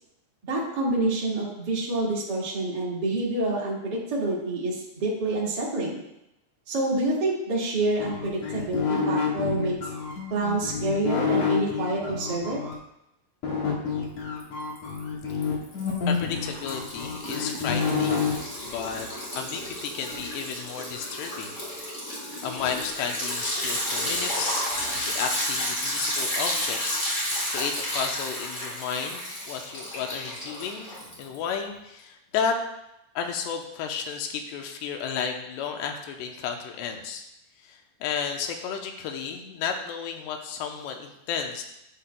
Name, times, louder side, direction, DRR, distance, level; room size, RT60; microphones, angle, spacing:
voice 1, 0.5-6.0 6.7-9.7 10.3-12.6, right 2 dB, 35° right, -5 dB, 1.7 m, -27 dB
sound 1, 8.0-12.7 13.4-18.3, left 5 dB, 55° left, 2.1 m, -28 dB
Liquid, 14.4-15.0 15.3-31.5, left 1 dB, 35° left, 1.1 m, -32 dB
voice 2, 16.1-18.2 18.6-19.1 19.4-21.6 22.1-24.5 24.9-32.6 33.2-37.2 37.6-41.6, left 7 dB, 85° left, 4 dB, 2.9 m, -33 dB
10.5 x 7.5 x 2.3 m, 0.85 s
omnidirectional pair, 4.7 m